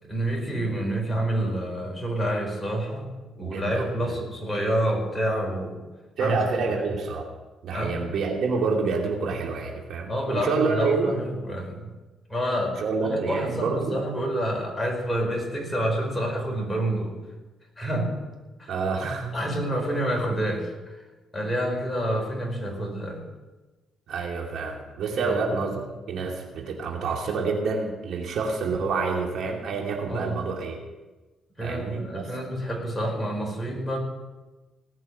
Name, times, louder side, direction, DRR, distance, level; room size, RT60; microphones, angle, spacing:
voice 1, 0.0-3.1 3.4-5.8 6.2-6.9 7.7-8.0 10.1-11.9 12.3-17.2 17.8-18.1 18.6-18.7 19.3-21.0 21.3-23.2 25.2-25.4 30.1-30.4 31.6-34.0, right 1 dB, 10° left, 0 dB, 4.9 m, -28 dB
voice 2, 3.4-4.1 6.2-7.3 7.6-11.1 12.8-14.0 18.7-19.4 24.1-30.8 31.6-32.3, right 4 dB, 65° right, 1 dB, 2.7 m, -28 dB
18.5 x 6.3 x 9.7 m, 1.2 s
cardioid pair, 90°, 0 cm